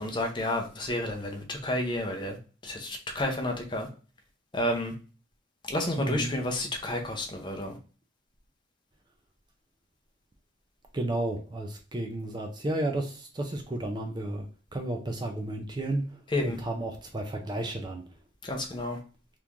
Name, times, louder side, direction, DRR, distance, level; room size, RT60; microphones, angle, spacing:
voice 1, 0.0-2.4 2.6-3.9 4.5-4.9 5.7-7.8 16.3-16.6 18.4-19.0, left 1 dB, 25° left, 3 dB, 0.6 m, -30 dB
voice 2, 6.0-6.4 10.9-14.5 14.7-18.0, right 1 dB, 20° right, 4 dB, 0.4 m, -32 dB
3.0 x 2.5 x 3.5 m, 0.36 s
head